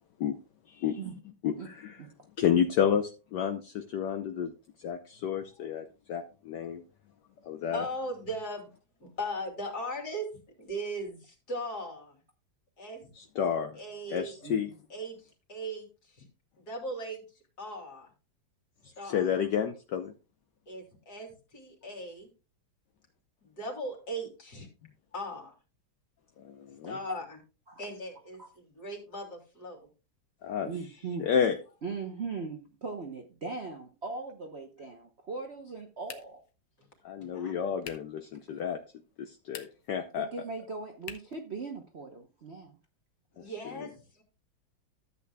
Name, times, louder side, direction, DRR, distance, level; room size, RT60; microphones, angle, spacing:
voice 1, 0.7-1.0 1.4-2.0 2.4-4.5 4.8-6.8 7.4-7.8 13.2-13.8 14.1-14.7 19.0-20.1 26.4-27.0 30.4-30.7 31.2-31.6 37.0-38.8 39.2-40.3 43.4-43.5, left 8 dB, 65° left, 1.3 m, -30 dB
voice 2, 7.7-8.7 9.0-12.2 12.8-13.1 13.7-14.3 14.9-16.3 16.6-18.1 19.0-19.3 20.7-22.3 23.4-24.7 25.1-25.5 26.7-27.4 27.8-29.9 36.8-36.9 37.2-37.5 43.3-44.2, right 1 dB, 50° left, 3.3 m, -39 dB
voice 3, 26.8-27.2 27.7-27.8 28.4-28.5 30.7-31.2 31.8-36.4 40.2-42.8, right 4 dB, 45° right, 0.9 m, -39 dB
sound 1, 36.0-36.5 37.8-38.2 39.4-40.0 41.0-41.4, left 8 dB, 85° left, 1.8 m, -45 dB
13.5 x 8.4 x 2.3 m
omnidirectional pair, 2.2 m